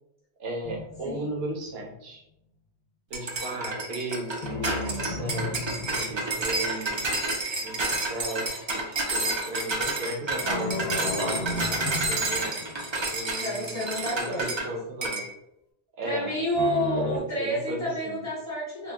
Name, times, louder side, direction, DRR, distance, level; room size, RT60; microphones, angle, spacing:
voice 1, 0.4-2.2 3.1-7.2 7.6-12.6 13.1-13.9 14.1-15.2 16.0-16.3 16.9-18.2, right 1 dB, 65° right, 0 dB, 0.9 m, -36 dB
sound 1, 0.6-1.8 4.4-7.1 10.4-13.1 16.6-17.2, left 3 dB, 55° left, 0.4 m, -34 dB
sound 2, 3.1-14.7 15.0-15.3, right 2 dB, 40° right, 0.4 m, -29 dB
voice 2, 13.4-14.5 16.0-18.9, equal, 35° left, -6 dB, 1.0 m, -29 dB
2.8 x 2.1 x 3.4 m, 0.81 s
omnidirectional pair, 1.2 m